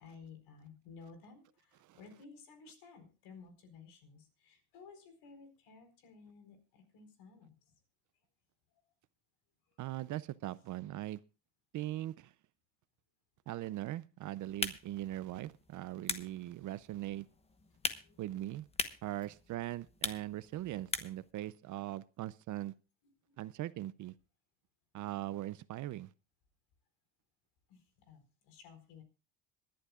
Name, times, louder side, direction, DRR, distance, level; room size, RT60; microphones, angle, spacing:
voice 1, 0.0-7.8 8.7-8.8 9.7-10.0 16.2-16.3 17.7-18.2 23.0-23.4 27.7-29.0, left 5 dB, 65° left, 4.4 m, -56 dB
voice 2, 9.8-11.2 11.7-12.3 13.5-17.2 18.2-18.6 19.0-22.7 23.4-24.1 24.9-26.1, right 14 dB, 45° right, 0.5 m, -40 dB
sound 1, 14.4-21.3, left 3 dB, 15° left, 1.1 m, -42 dB
26.0 x 11.5 x 2.4 m
supercardioid pair, 110°, 42 cm